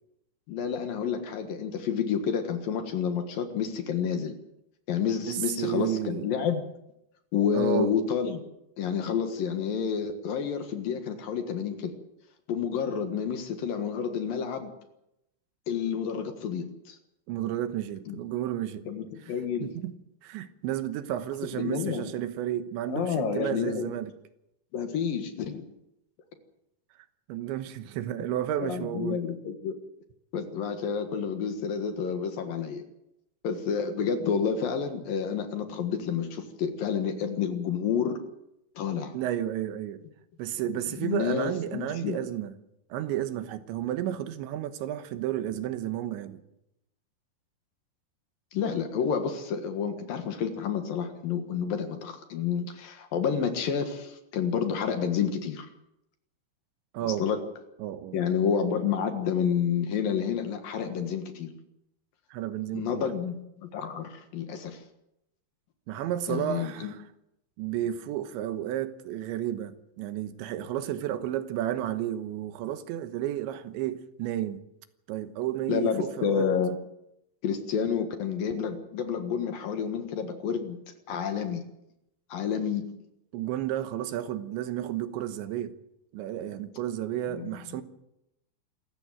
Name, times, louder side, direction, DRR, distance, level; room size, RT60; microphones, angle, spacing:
voice 1, 0.5-4.4 4.9-6.6 7.3-8.4 8.8-11.9 12.5-14.7 15.7-17.0 18.1-18.2 18.9-19.7 21.5-22.1 22.9-23.9 24.7-25.6 28.6-29.7 30.3-32.8 33.4-38.2 38.8-39.2 40.9-42.2 48.5-55.7 57.0-57.4 58.1-61.5 62.7-64.8 66.3-66.9 75.7-76.8 77.4-80.8 81.1-81.6 82.3-82.8 87.3-87.5, left 7 dB, 60° left, 2.9 m, -29 dB
voice 2, 5.3-6.3 7.5-7.9 17.3-18.9 19.2-19.3 19.6-20.0 20.2-24.1 27.3-29.2 39.1-40.0 40.4-42.5 42.9-46.4 56.9-57.3 57.8-58.2 62.3-63.1 65.9-67.0 67.6-74.6 75.1-76.5 83.3-85.8 86.1-87.8, right 12 dB, 85° right, 3.5 m, -32 dB
26.5 x 15.0 x 7.9 m
omnidirectional pair, 5.2 m